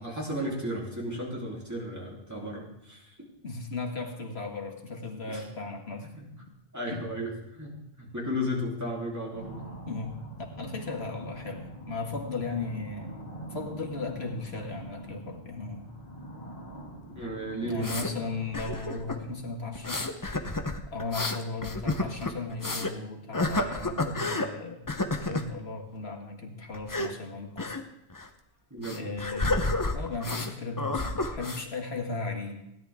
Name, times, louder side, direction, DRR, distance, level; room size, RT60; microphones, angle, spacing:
voice 1, 0.0-3.1 5.3-5.4 6.2-6.3 6.7-9.7 17.1-17.9 28.7-29.2, equal, 15° right, -4 dB, 3.1 m, -34 dB
voice 2, 3.4-6.1 6.9-7.0 9.9-10.2 10.6-13.2 13.5-15.9 17.6-20.1 20.9-24.8 25.2-27.7 28.9-32.6, left 3 dB, 90° left, 2 dB, 1.9 m, -36 dB
sound 1, 9.3-19.5, right 1 dB, 40° left, 2.6 m, -44 dB
sound 2, 17.2-18.1 18.5-19.2 19.7-22.9 23.3-24.5 24.9-25.5 26.7-27.1 27.6-27.8 28.1-28.3 28.8-30.5 30.8-31.6, left 2 dB, 20° left, 0.7 m, -30 dB
16.5 x 10.5 x 3.6 m, 0.84 s
omnidirectional pair, 1.1 m